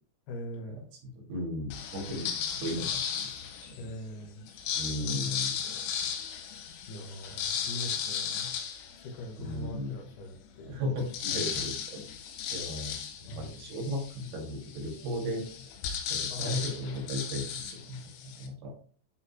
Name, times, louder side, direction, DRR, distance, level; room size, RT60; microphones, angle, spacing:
voice 1, 0.3-0.9 2.8-2.9 3.8-4.5 4.7-5.9 6.3-6.5 6.9-8.6 9.0-10.7 11.3-11.7 13.3-13.5 16.3-16.7, equal, 60° left, 1 dB, 3.2 m, -43 dB
voice 2, 1.2-2.3 2.5-3.3 3.6-3.8 4.7-5.6 9.4-9.9 10.7-12.0 12.5-15.4 16.1-17.5 17.7-18.1 18.4-18.7, equal, 75° right, -1 dB, 4.9 m, -35 dB
sound 1, 1.7-3.9 4.5-9.6 10.1-10.2 10.5-18.5, left 8 dB, 90° left, 3.8 m, -36 dB
11.5 x 5.4 x 2.2 m, 0.42 s
omnidirectional pair, 5.5 m